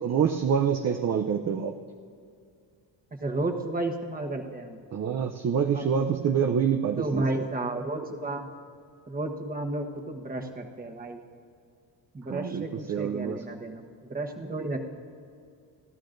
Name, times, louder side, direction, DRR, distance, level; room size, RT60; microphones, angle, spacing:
voice 1, 0.0-1.7 4.9-7.3 12.3-13.4, right 7 dB, 40° right, 5 dB, 0.6 m, -26 dB
voice 2, 3.2-4.8 5.7-5.8 7.0-8.5 9.1-11.2 12.1-13.8 14.1-14.8, right 2 dB, 20° right, 3 dB, 1.2 m, -32 dB
29.0 x 12.5 x 2.6 m, 2.3 s
cardioid pair, 115°, 43 cm